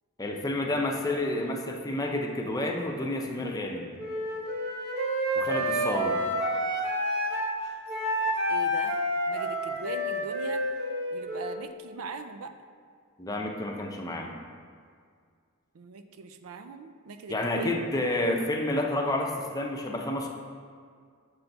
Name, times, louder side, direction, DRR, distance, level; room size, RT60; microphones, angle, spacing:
voice 1, 0.2-3.9 5.4-6.2 13.2-14.3 17.3-20.3, left 1 dB, 15° left, 1 dB, 0.6 m, -30 dB
Wind instrument woodwind instrument, 4.0-7.6 7.9-11.6, equal, 50° right, 0.9 m, -29 dB
voice 2, 8.5-10.7 11.1-12.5 15.7-17.8, right 4 dB, 90° right, 8 dB, 0.4 m, -41 dB
6.9 x 4.0 x 4.5 m, 2.1 s
head